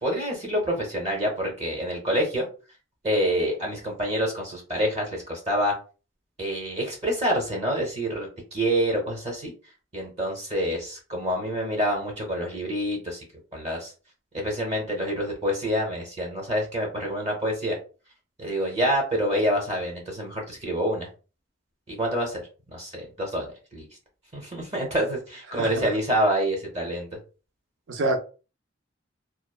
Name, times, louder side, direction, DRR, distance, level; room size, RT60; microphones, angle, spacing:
voice 1, 0.0-2.5 3.0-5.7 6.4-9.5 9.9-13.2 13.5-13.9 14.3-17.8 18.4-21.1 21.9-22.4 22.7-23.9 24.3-27.2, equal, 35° right, 0.9 m, -27 dB
voice 2, 25.5-25.9 27.9-28.2, right 2 dB, 80° right, 0.5 m, -26 dB
3.0 x 2.0 x 2.3 m
head